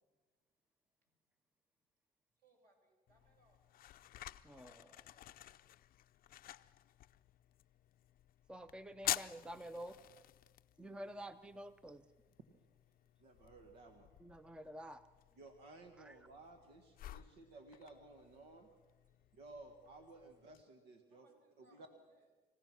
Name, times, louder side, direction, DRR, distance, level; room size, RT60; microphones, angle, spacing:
voice 1, 2.4-3.6 4.8-5.6 6.0-6.4 9.6-10.2 13.3-13.4 15.3-15.4 17.0-17.5 19.1-19.4 20.3-20.4 21.1-22.3, right 2 dB, 55° right, 1 dB, 7.1 m, -75 dB
sound 1, 3.1-20.6, left 13 dB, 60° left, 0.5 m, -50 dB
voice 2, 4.4-5.1 8.5-10.0 10.8-12.0 14.2-15.0 16.0-16.1, right 1 dB, 5° right, 12 dB, 0.6 m, -49 dB
voice 3, 13.2-14.1 15.3-18.7 19.3-21.3 21.6-21.9, right 2 dB, 85° right, 5 dB, 1.7 m, -57 dB
26.0 x 16.5 x 6.2 m, 1.3 s
cardioid pair, 110°, 17 cm